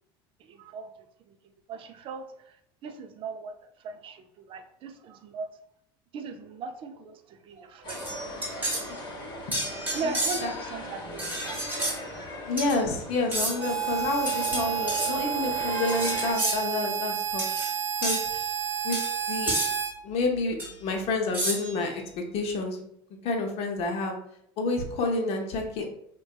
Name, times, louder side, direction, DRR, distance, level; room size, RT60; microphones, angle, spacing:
voice 1, 0.4-0.9 1.3-1.4 1.7-5.5 6.1-8.3 9.9-11.6, right 4 dB, 45° right, 7 dB, 0.3 m, -38 dB
sound 1, 7.8-16.3, left 1 dB, 40° left, 1.0 m, -39 dB
sound 2, 7.9-8.9 9.5-10.6 11.2-12.0 12.6-12.8 13.3-13.7 14.3-15.1 15.9-16.6 17.4-17.7 18.0-18.3 18.9-19.1 19.5-19.7 20.6-20.7 21.3-21.8, right 1 dB, 15° right, 0.9 m, -31 dB
voice 2, 8.9-9.3 10.4-10.5 12.5-17.4 18.0-18.2 18.8-19.0 19.3-19.7 20.0-22.0 22.3-22.8 23.2-24.1 24.6-25.9, left 3 dB, 55° left, 3 dB, 0.6 m, -29 dB
Harmonica, 13.6-19.9, right 9 dB, 85° right, 0.6 m, -30 dB
2.6 x 2.2 x 2.2 m, 0.70 s
supercardioid pair, 90°, 12 cm